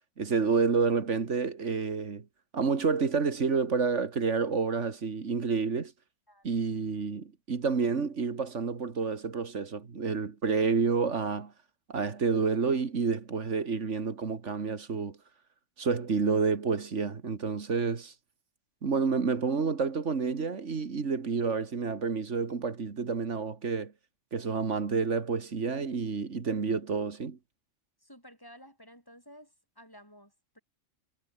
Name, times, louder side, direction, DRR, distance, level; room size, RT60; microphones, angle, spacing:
voice 1, 0.2-2.2 2.5-5.9 6.4-11.5 11.9-15.2 15.8-18.1 18.8-23.9 24.3-27.4, right 5 dB, 65° right, 2.1 m, -29 dB
voice 2, 28.0-30.6, equal, 15° left, 6.5 m, -53 dB
omnidirectional pair, 1.3 m